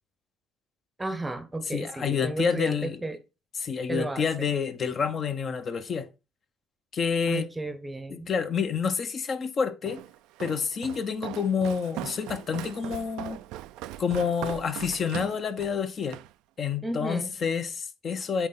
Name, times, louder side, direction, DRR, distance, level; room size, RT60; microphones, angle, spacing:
voice 1, 1.0-3.2 3.9-4.5 7.3-8.3 16.8-17.4, right 2 dB, 10° right, 0.9 m, -33 dB
voice 2, 1.7-3.0 3.6-6.1 6.9-7.5 8.1-10.0 10.4-13.4 14.0-16.2 16.6-18.5, left 6 dB, 40° left, 0.9 m, -28 dB
Walk footsteps, 9.9-16.3, right 15 dB, 80° right, 0.4 m, -40 dB
8.3 x 3.2 x 5.6 m
cardioid pair, 110°, 0 cm